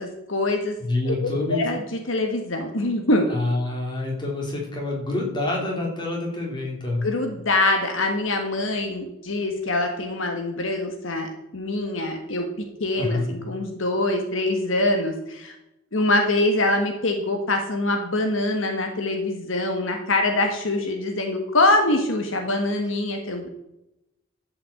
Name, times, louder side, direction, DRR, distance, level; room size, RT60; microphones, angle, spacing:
voice 1, 0.0-0.8 1.0-1.1 1.5-3.3 7.0-12.5 12.8-15.5 15.9-23.5, left 2 dB, 70° left, 4 dB, 1.5 m, -24 dB
voice 2, 0.8-1.6 3.3-7.1 13.0-13.3, left 2 dB, 25° left, -1 dB, 3.3 m, -27 dB
12.0 x 5.9 x 7.8 m, 0.89 s
head